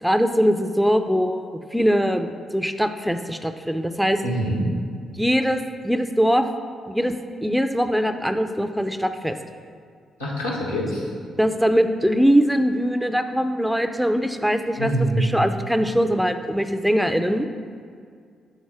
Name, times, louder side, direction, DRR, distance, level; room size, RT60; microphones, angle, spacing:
voice 1, 0.0-4.2 5.1-6.4 6.9-7.1 7.4-9.4 11.4-14.9 15.2-17.5, equal, ahead, 8 dB, 0.4 m, -22 dB
voice 2, 4.2-4.7 10.2-11.1 14.8-15.3, right 1 dB, 90° left, -5 dB, 1.0 m, -24 dB
5.8 x 4.0 x 4.7 m, 2.2 s
figure-of-eight pair, 40°, 0 cm